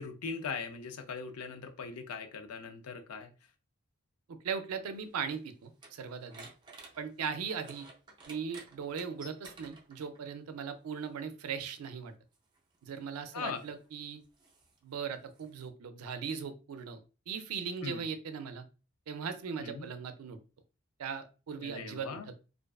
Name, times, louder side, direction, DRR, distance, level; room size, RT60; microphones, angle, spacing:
voice 1, 0.0-3.3 13.3-13.7 17.8-18.0 19.6-19.9 21.6-22.3, left 5 dB, 90° left, 7 dB, 0.4 m, -40 dB
voice 2, 4.3-6.5 7.0-7.9 8.3-12.1 12.8-14.2 14.8-17.0 17.3-18.6 19.1-20.4 21.0-22.1, right 6 dB, 85° right, 9 dB, 0.4 m, -39 dB
sound 1, 4.9-10.3 11.4-11.6 12.3-15.7, right 2 dB, 20° right, 0.4 m, -54 dB
2.5 x 2.3 x 2.3 m, 0.33 s
head